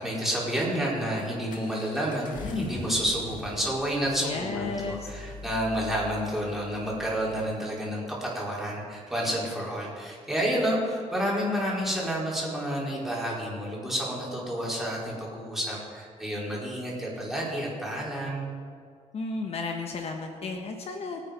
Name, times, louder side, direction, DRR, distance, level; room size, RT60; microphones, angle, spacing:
voice 1, 0.0-18.6, equal, ahead, -6 dB, 4.9 m, -30 dB
Accelerating revving vroom, 0.8-7.4, left 3 dB, 85° left, 1.9 m, -43 dB
voice 2, 4.2-5.1 19.1-21.2, left 3 dB, 50° left, 3 dB, 1.3 m, -33 dB
23.0 x 9.4 x 5.4 m, 2.2 s
cardioid pair, 130°, 13 cm